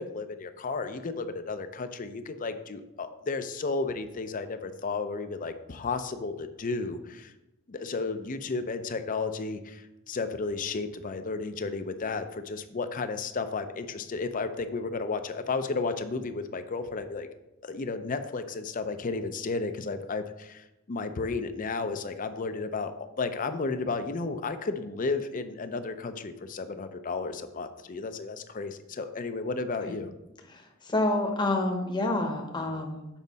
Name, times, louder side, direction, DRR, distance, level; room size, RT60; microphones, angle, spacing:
voice 1, 0.0-7.3 7.7-17.3 17.6-22.9 23.2-30.1, left 4 dB, 40° left, 9 dB, 0.5 m, -33 dB
voice 2, 30.5-33.1, left 2 dB, 20° left, 2 dB, 0.9 m, -28 dB
7.3 x 5.2 x 4.0 m, 0.93 s
head